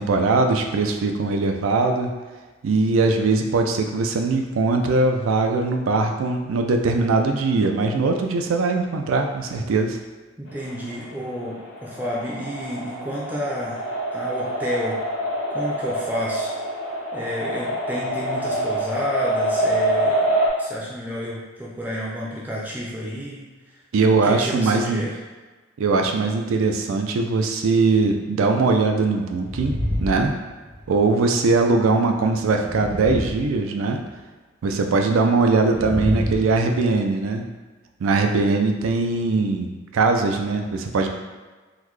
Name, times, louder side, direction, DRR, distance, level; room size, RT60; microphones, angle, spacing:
voice 1, 0.0-2.1 2.6-10.0 23.9-25.0 25.8-30.3 30.9-34.0 34.6-37.5 38.0-41.1, right 3 dB, 85° right, 4 dB, 0.4 m, -21 dB
voice 2, 10.4-13.8 14.1-15.0 15.5-16.5 17.1-20.3 20.6-23.8 24.2-25.2, equal, 10° right, -6 dB, 0.4 m, -30 dB
sound 1, 10.5-20.5, right 1 dB, 80° left, 1.0 m, -26 dB
sound 2, 29.4-31.0 32.4-34.1 35.6-36.9, equal, 50° right, 1.1 m, -28 dB
3.8 x 2.1 x 3.1 m, 1.3 s
head